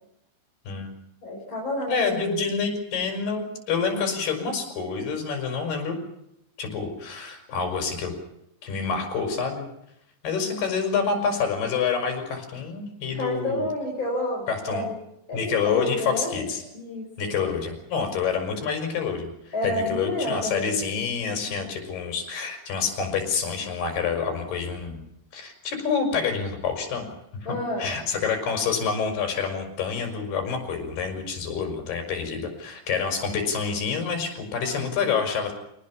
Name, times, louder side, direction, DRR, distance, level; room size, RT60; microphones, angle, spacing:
voice 1, 1.2-2.4 13.1-14.9 15.3-16.3 16.7-17.3 19.5-20.8 27.4-27.9, left 1 dB, 25° left, -2 dB, 4.9 m, -30 dB
voice 2, 1.9-6.0 6.6-8.1 8.6-9.7 10.2-13.7 14.5-14.9 15.3-16.6 17.2-25.0 25.3-27.1 27.4-35.5, left 5 dB, 55° left, 5 dB, 7.0 m, -27 dB
26.0 x 19.5 x 7.3 m, 0.80 s
omnidirectional pair, 5.5 m